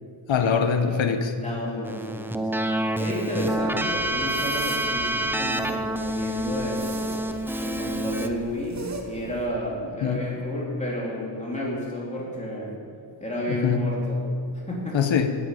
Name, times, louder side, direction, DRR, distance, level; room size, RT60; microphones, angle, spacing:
voice 1, 0.3-1.3 10.0-10.2 13.5-13.9 14.9-15.4, left 6 dB, 70° left, 7 dB, 1.1 m, -23 dB
voice 2, 1.4-2.7 3.0-7.1 7.6-12.8 13.2-15.0, equal, 15° left, -5 dB, 3.0 m, -32 dB
Keyboard (musical), 1.8-8.3, right 1 dB, 5° right, 0.5 m, -28 dB
sound 1, 3.4-9.5, right 3 dB, 35° right, 1.4 m, -41 dB
9.4 x 8.8 x 9.0 m, 2.3 s
wide cardioid pair, 130°, 48 cm